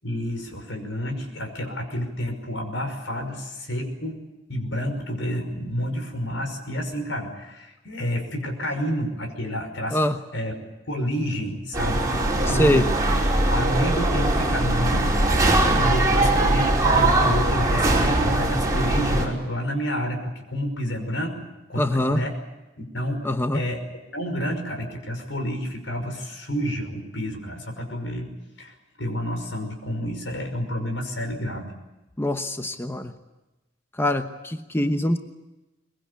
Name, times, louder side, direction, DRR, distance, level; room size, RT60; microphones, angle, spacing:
voice 1, 0.0-4.2 4.5-10.0 10.3-13.2 13.5-22.4 22.8-23.8 24.1-28.3 28.6-31.7, equal, 80° left, 5 dB, 5.7 m, -29 dB
sound 1, 11.7-19.3, right 2 dB, 20° right, 5.1 m, -21 dB
voice 2, 12.5-12.9 21.8-22.2 23.2-23.6 32.2-33.1 34.0-35.2, left 1 dB, 15° left, 7 dB, 1.0 m, -23 dB
23.0 x 22.0 x 8.4 m, 1.0 s
head